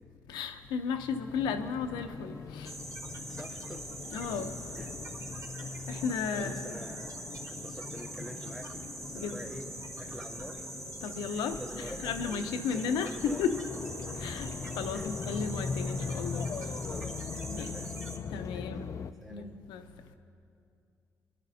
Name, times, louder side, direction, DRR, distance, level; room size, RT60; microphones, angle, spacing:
voice 1, 0.3-2.7 4.1-4.5 5.8-6.8 9.1-9.4 11.0-13.6 14.2-14.5 14.8-16.5 17.5-17.7 18.3-18.9 19.3-19.8, left 6 dB, 90° left, 0.7 m, -34 dB
sound 1, 1.3-19.1, left 5 dB, 45° left, 0.4 m, -41 dB
sound 2, 2.6-18.2, right 2 dB, 50° right, 3.6 m, -43 dB
voice 2, 3.3-3.8 4.8-4.9 6.3-7.2 7.5-9.7 10.0-10.6 11.3-13.4 14.9-15.1 16.9-17.9 18.5-18.8 19.2-19.6, equal, ahead, 0.7 m, -46 dB
28.0 x 11.0 x 2.7 m
supercardioid pair, 65°, 7 cm